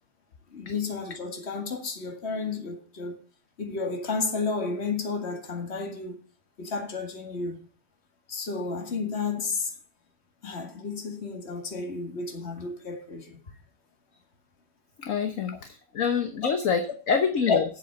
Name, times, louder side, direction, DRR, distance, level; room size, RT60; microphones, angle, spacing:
voice 1, 0.5-3.1 3.6-6.2 6.6-7.6 8.3-9.7 10.4-13.4 16.4-16.5 17.1-17.2 17.5-17.6, left 4 dB, 40° left, 2.2 m, -31 dB
voice 2, 15.0-17.6, left 6 dB, 55° left, 1.3 m, -26 dB
8.2 x 7.7 x 7.8 m
omnidirectional pair, 1.8 m